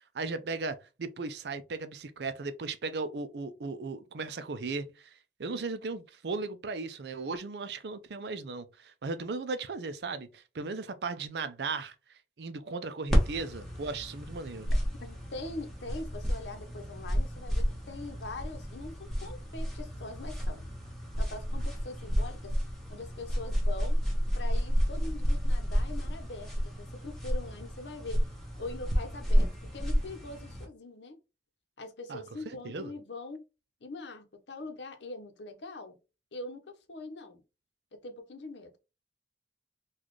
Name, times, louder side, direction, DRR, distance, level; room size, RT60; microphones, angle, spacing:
voice 1, 0.1-5.1 5.4-11.9 12.4-14.7 32.1-32.9, right 4 dB, 65° right, 0.5 m, -36 dB
sound 1, 13.1-30.7, equal, ahead, 1.0 m, -31 dB
voice 2, 15.0-20.7 21.2-22.5 22.9-24.0 24.3-28.2 28.6-31.2 31.8-33.4 33.8-35.9 36.3-37.4 38.0-38.7, left 2 dB, 85° left, 0.8 m, -43 dB
4.0 x 2.4 x 3.1 m
head